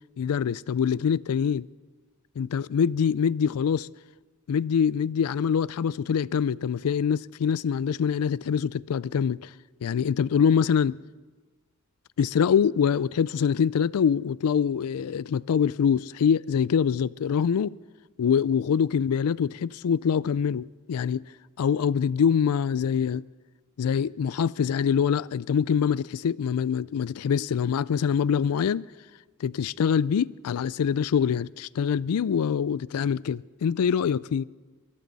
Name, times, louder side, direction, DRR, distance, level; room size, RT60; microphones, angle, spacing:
voice 1, 0.2-1.7 2.4-3.9 4.5-9.5 9.8-11.0 12.2-17.8 18.2-21.2 21.6-23.2 23.8-28.8 29.4-34.5, left 7 dB, 85° left, 0.4 m, -24 dB
23.0 x 14.5 x 4.1 m
head